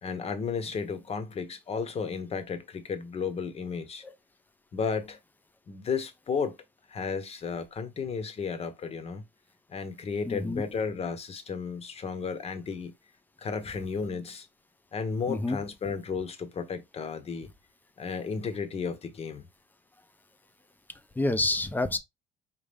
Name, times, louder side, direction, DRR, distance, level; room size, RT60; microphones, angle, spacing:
voice 1, 0.0-4.0 4.7-5.2 5.7-6.6 6.9-9.2 9.7-12.9 13.4-14.5 14.9-17.5 18.0-19.5, left 5 dB, 40° left, 0.9 m, -33 dB
voice 2, 10.3-10.6 15.3-15.6 21.2-22.0, left 2 dB, 10° left, 0.5 m, -28 dB
5.3 x 2.5 x 3.4 m
cardioid pair, 110°, 17 cm